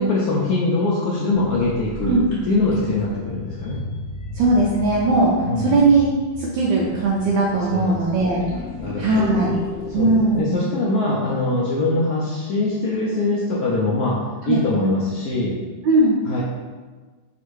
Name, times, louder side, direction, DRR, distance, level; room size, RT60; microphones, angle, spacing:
voice 1, 0.0-2.2 2.5-3.8 5.4-5.7 7.7-8.0 8.7-9.5 9.9-14.2 14.5-15.5 16.2-16.4, left 2 dB, 75° left, -5 dB, 0.8 m, -22 dB
sound 1, 1.3-10.4, left 3 dB, 45° left, 0.7 m, -34 dB
voice 2, 4.3-5.3 5.6-6.1 6.4-8.4 9.0-9.5 9.9-10.6 14.4-14.6 15.8-16.2, right 2 dB, 75° right, -5 dB, 1.3 m, -18 dB
3.6 x 2.5 x 4.5 m, 1.4 s
omnidirectional pair, 2.2 m